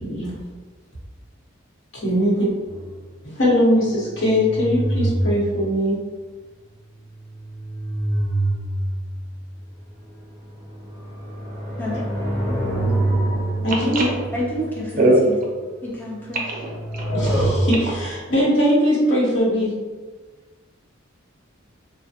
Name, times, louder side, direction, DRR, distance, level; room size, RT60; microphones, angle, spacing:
voice 1, 2.0-2.5 3.4-6.0 13.6-13.7 14.0-14.1 17.1-17.7 18.3-19.8, equal, 65° left, -7 dB, 1.0 m, -20 dB
sound 1, 2.7-3.0 4.1-5.7 7.1-9.4 10.1-15.2 16.4-18.2, right 1 dB, 25° right, 1.1 m, -26 dB
voice 2, 13.7-14.2 15.0-15.2 16.5-17.4, right 2 dB, 40° right, -2 dB, 0.5 m, -22 dB
voice 3, 14.3-15.3 15.8-16.4, equal, 10° left, -7 dB, 0.5 m, -28 dB
3.2 x 2.1 x 2.7 m, 1.4 s
head